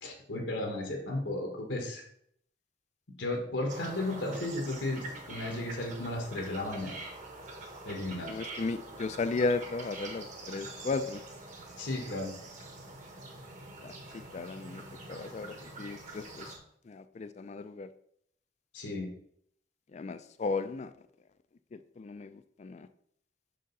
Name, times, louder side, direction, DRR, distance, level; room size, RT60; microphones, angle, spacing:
voice 1, 0.0-2.0 3.2-6.9 7.8-8.4 11.8-12.3 18.7-19.1, left 2 dB, 85° left, 1 dB, 1.4 m, -34 dB
sound 1, 3.7-16.6, right 2 dB, 45° right, 1.2 m, -45 dB
voice 2, 8.3-11.2 13.8-14.8 15.1-16.5 16.9-17.9 19.9-20.9 21.7-22.9, left 3 dB, 40° left, 11 dB, 0.3 m, -35 dB
5.7 x 5.1 x 4.0 m, 0.69 s
head